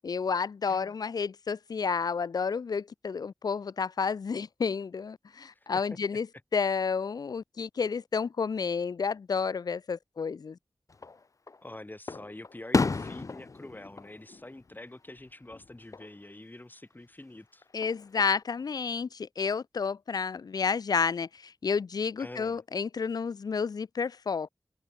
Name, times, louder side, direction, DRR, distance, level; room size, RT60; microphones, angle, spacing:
voice 1, 0.0-6.3 6.5-10.6 17.7-24.5, left 5 dB, 80° left, 0.6 m, -30 dB
Fireworks, 10.9-11.6 12.1-15.2 15.5-16.1 17.6-18.4, left 4 dB, 55° left, 0.9 m, -33 dB
voice 2, 11.6-17.6 22.2-22.6, left 1 dB, 30° left, 4.3 m, -46 dB
cardioid pair, 50°, 7 cm